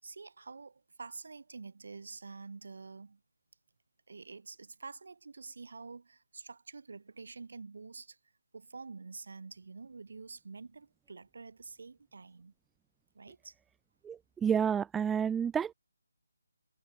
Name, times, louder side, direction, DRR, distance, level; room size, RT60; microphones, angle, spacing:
voice 1, 0.0-3.2 4.1-8.2 8.5-12.5 13.1-13.6, right 4 dB, 60° right, 5.3 m, -48 dB
voice 2, 14.0-15.7, right 7 dB, 5° right, 0.4 m, -30 dB
figure-of-eight pair, 160°, 0 cm